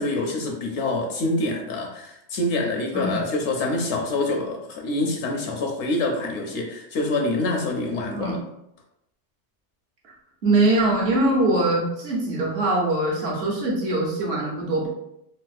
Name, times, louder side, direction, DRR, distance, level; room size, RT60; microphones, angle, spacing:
voice 1, 0.0-8.4, left 2 dB, 75° left, 2 dB, 0.8 m, -26 dB
voice 2, 10.4-14.9, right 2 dB, 55° right, -4 dB, 1.1 m, -22 dB
4.0 x 2.1 x 2.5 m, 0.80 s
omnidirectional pair, 1.2 m